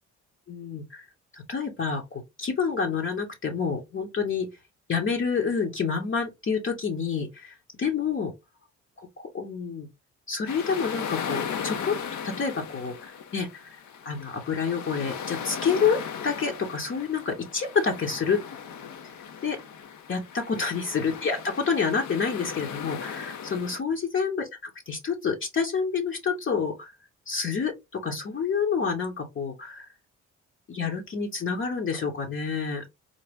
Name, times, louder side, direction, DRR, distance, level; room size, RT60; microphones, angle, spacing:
voice 1, 0.5-1.0 1.3-4.5 4.9-8.3 9.0-9.9 10.3-12.0 12.2-18.4 19.4-19.6 20.1-26.9 27.3-29.9 30.7-32.8, left 5 dB, 40° left, 0.9 m, -28 dB
sound 1, 10.5-23.8, left 7 dB, 70° left, 0.8 m, -37 dB
3.9 x 2.2 x 3.4 m
cardioid pair, 90°, 30 cm